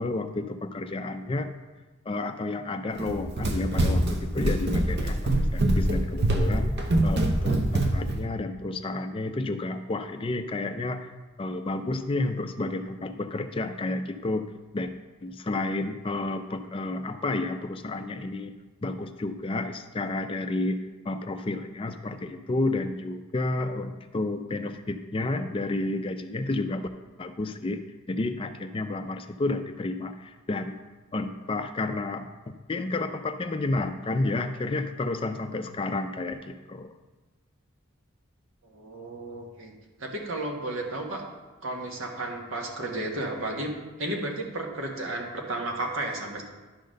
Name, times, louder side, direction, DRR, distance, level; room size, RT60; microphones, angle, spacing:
voice 1, 0.0-1.5 2.1-11.1 11.4-14.5 14.7-14.9 15.2-18.5 18.8-20.8 21.1-26.9 27.2-30.8 31.1-32.3 32.7-36.9, left 2 dB, 25° left, 8 dB, 0.4 m, -31 dB
Run, 3.0-8.2, right 1 dB, 50° right, 0.8 m, -24 dB
voice 2, 38.6-39.7 40.0-41.2 41.6-43.7 44.0-46.4, right 2 dB, 70° right, 1 dB, 1.4 m, -33 dB
10.5 x 3.9 x 6.4 m, 1.2 s
head